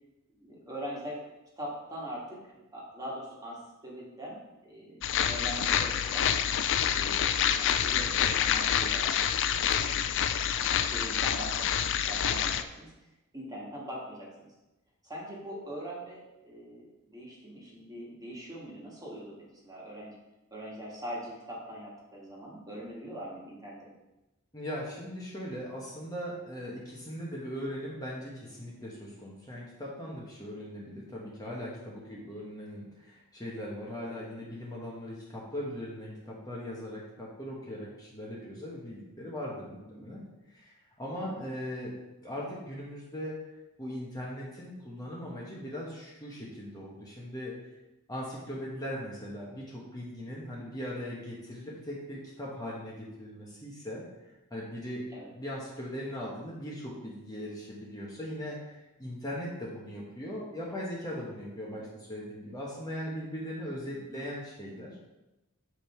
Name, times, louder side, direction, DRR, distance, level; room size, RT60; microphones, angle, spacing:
voice 1, 0.3-1.2 1.6-6.3 6.8-9.2 9.5-10.0 10.5-12.9 13.3-14.5 15.0-20.2 20.5-24.0 32.1-32.3 39.7-40.1 41.2-41.5 55.1-55.3 61.6-61.8 63.9-64.2, equal, 15° right, -4 dB, 2.0 m, -42 dB
sound 1, 5.0-12.6, left 9 dB, 60° left, 0.4 m, -27 dB
voice 2, 24.5-40.2 40.5-40.7 41.0-41.9 42.2-43.4 43.8-47.5 48.1-54.0 54.5-55.0 55.3-64.9, equal, 20° left, -5 dB, 1.3 m, -39 dB
7.6 x 5.3 x 4.5 m, 0.99 s
head